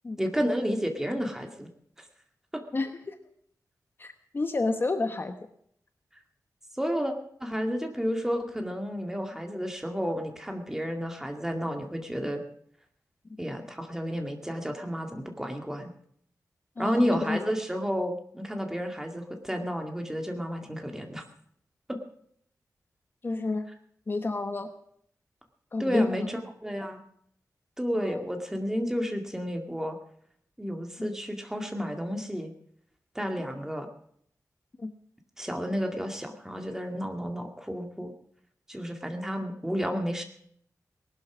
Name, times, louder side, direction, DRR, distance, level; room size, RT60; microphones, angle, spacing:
voice 1, 0.2-1.7 6.8-7.1 7.4-12.4 13.4-15.9 16.8-21.2 21.9-22.0 25.8-27.0 27.8-30.0 30.6-32.5 33.2-33.9 35.4-38.1 38.7-40.2, equal, 5° right, 4 dB, 2.2 m, -31 dB
voice 2, 2.7-3.2 4.0-5.4 16.8-17.4 23.2-23.7 24.1-24.7 25.7-26.3 26.8-26.9 27.9-28.2 31.0-31.1 34.8-34.9, left 3 dB, 35° left, 8 dB, 1.0 m, -30 dB
19.0 x 12.0 x 6.1 m, 0.67 s
wide cardioid pair, 135°, 6 cm